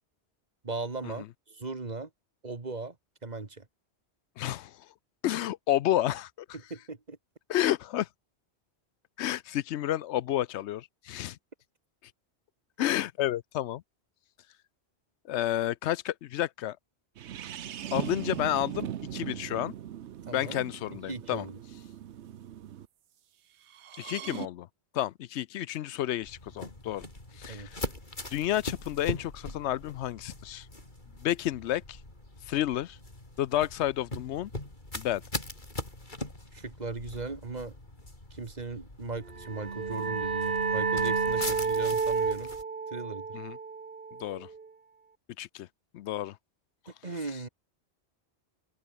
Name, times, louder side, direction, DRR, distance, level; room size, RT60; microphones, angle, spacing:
voice 1, 0.6-2.1 2.4-3.0 3.2-3.7 6.5-7.2 20.3-21.6 27.5-27.7 36.5-37.8 38.3-42.5 42.9-43.3 47.0-47.5, right 3 dB, 40° right, 1.9 m, -38 dB
voice 2, 4.4-4.7 5.2-6.5 7.5-8.1 9.2-11.4 12.8-13.8 15.3-16.8 17.9-19.7 20.3-21.5 24.0-24.7 24.9-27.0 27.4-27.8 28.3-30.7 31.2-32.0 32.5-33.0 33.4-34.5 34.9-35.2 41.4-41.5 43.3-43.6 44.2-44.5 45.4-45.7 45.9-46.4, left 13 dB, 80° left, 0.9 m, -30 dB
sound 1, 17.2-22.9 23.7-24.5, right 10 dB, 80° right, 1.1 m, -39 dB
sound 2, 26.2-42.6, left 1 dB, 45° left, 4.7 m, -41 dB
sound 3, 39.3-44.7, right 5 dB, 55° right, 1.8 m, -31 dB
open air
omnidirectional pair, 1.1 m